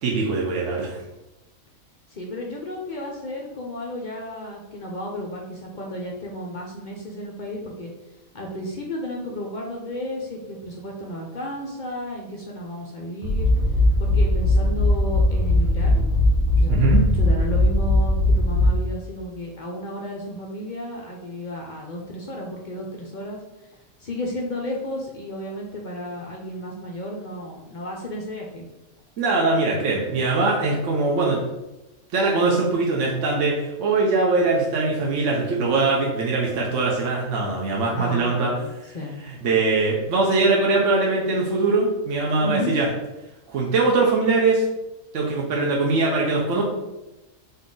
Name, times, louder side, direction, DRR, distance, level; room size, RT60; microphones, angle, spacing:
voice 1, 0.0-1.0 16.7-17.0 29.2-31.4 32.1-38.5 38.8-38.9 39.3-42.9 43.5-44.6 45.1-46.6, right 3 dB, 65° right, -3 dB, 1.0 m, -22 dB
voice 2, 2.1-7.9 8.3-13.5 14.0-16.1 16.6-23.4 24.0-28.7 37.9-38.7 38.9-39.1 42.4-42.8, equal, 65° left, -1 dB, 0.4 m, -33 dB
sound 1, 13.2-19.0, left 1 dB, 80° right, 1.3 m, -19 dB
4.0 x 2.7 x 3.7 m, 1.0 s
omnidirectional pair, 1.5 m